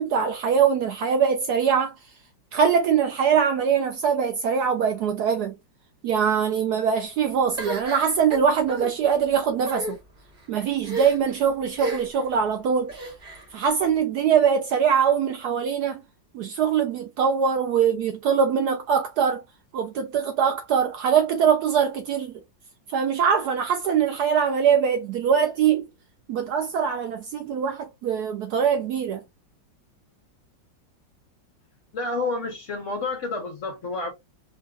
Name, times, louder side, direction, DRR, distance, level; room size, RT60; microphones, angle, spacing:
voice 1, 0.0-2.0 2.5-5.5 6.0-10.0 10.5-12.9 13.5-16.0 16.3-19.4 19.7-22.3 22.9-25.9 26.3-29.2, right 7 dB, 75° right, 1.0 m, -22 dB
sound 1, 7.6-8.9 9.6-9.9 10.8-11.3 11.8-12.2 12.9-13.5, right 2 dB, 35° right, 1.2 m, -33 dB
voice 2, 31.9-34.1, left 3 dB, 50° left, 1.1 m, -29 dB
3.9 x 2.3 x 2.4 m
omnidirectional pair, 2.1 m